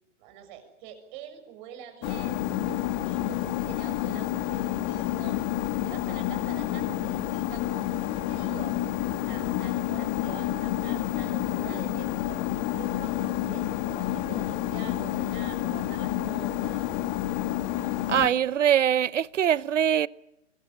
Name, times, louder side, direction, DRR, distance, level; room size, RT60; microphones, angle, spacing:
voice 1, 0.2-7.8 8.1-8.8 9.1-16.9, right 9 dB, 40° right, 6.7 m, -46 dB
sound 1, 2.0-18.3, left 13 dB, 35° left, 2.0 m, -29 dB
voice 2, 18.1-20.1, right 9 dB, 85° right, 0.9 m, -23 dB
25.0 x 21.5 x 8.7 m
hypercardioid pair, 140°, 36 cm